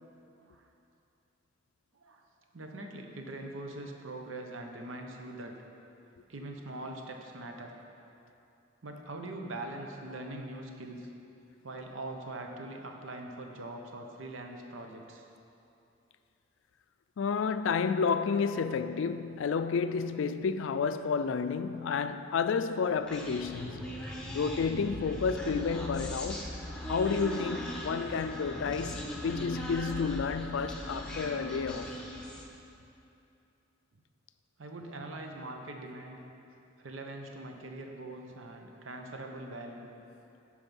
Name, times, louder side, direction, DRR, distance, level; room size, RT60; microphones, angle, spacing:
voice 1, 1.9-2.2 2.5-5.5 6.3-7.7 8.8-11.1 11.6-15.2 34.6-36.2 36.8-39.9, right 2 dB, 75° right, 0.9 m, -42 dB
voice 2, 17.2-23.9 24.3-26.5 26.9-31.9, left 5 dB, 70° left, 0.4 m, -31 dB
Human voice, 23.1-32.5, equal, 5° left, 0.9 m, -39 dB
11.5 x 4.8 x 5.3 m
head